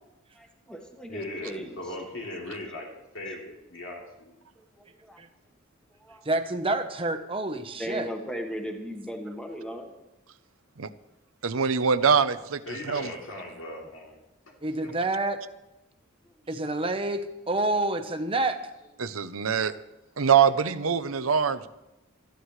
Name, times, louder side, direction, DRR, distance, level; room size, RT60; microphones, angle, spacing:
voice 1, 0.3-1.8 4.8-5.2 6.0-6.2 7.8-9.9 16.2-16.3, equal, 5° left, 2 dB, 1.5 m, -37 dB
voice 2, 1.1-4.4 12.7-14.2 14.5-14.6 14.8-15.0, left 1 dB, 70° left, -2 dB, 3.5 m, -39 dB
voice 3, 6.2-8.1 14.6-15.4 16.5-18.6, right 2 dB, 25° right, 7 dB, 1.0 m, -28 dB
voice 4, 11.4-12.6 12.9-13.0 19.0-19.7 20.2-21.7, right 6 dB, 90° right, 13 dB, 0.8 m, -23 dB
19.0 x 14.0 x 3.3 m, 0.94 s
head